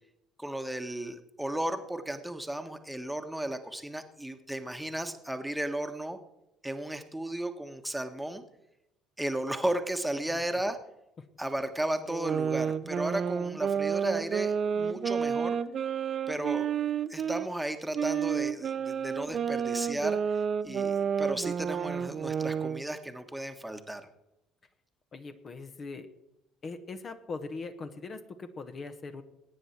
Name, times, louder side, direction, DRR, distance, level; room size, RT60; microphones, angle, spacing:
voice 1, 0.4-6.2 6.6-8.4 9.2-10.8 11.4-15.6 16.3-16.7 17.1-20.2 20.6-24.1, right 1 dB, 5° right, 6 dB, 1.4 m, -34 dB
sound 1, 12.1-17.5 17.9-22.8, right 7 dB, 45° right, 0.6 m, -30 dB
voice 2, 25.1-26.1 26.6-29.2, left 3 dB, 40° left, 8 dB, 1.3 m, -41 dB
21.0 x 9.4 x 4.5 m, 0.89 s
figure-of-eight pair, 55°, 0 cm